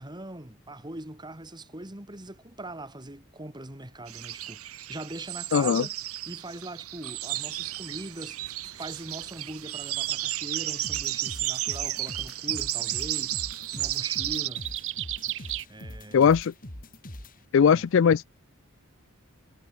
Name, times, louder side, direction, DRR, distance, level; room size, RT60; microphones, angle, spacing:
voice 1, 0.0-5.9 6.3-13.4 13.7-14.7 15.7-16.3 17.7-17.9, right 1 dB, 20° right, 2.7 m, -41 dB
sound 1, 4.1-14.5, right 15 dB, 85° right, 1.2 m, -33 dB
voice 2, 5.5-5.8 16.1-16.5 17.5-18.3, left 7 dB, 60° left, 0.4 m, -20 dB
sound 2, 7.3-15.7, right 13 dB, 60° right, 1.0 m, -41 dB
sound 3, 10.8-17.4, left 1 dB, 40° left, 4.7 m, -42 dB
head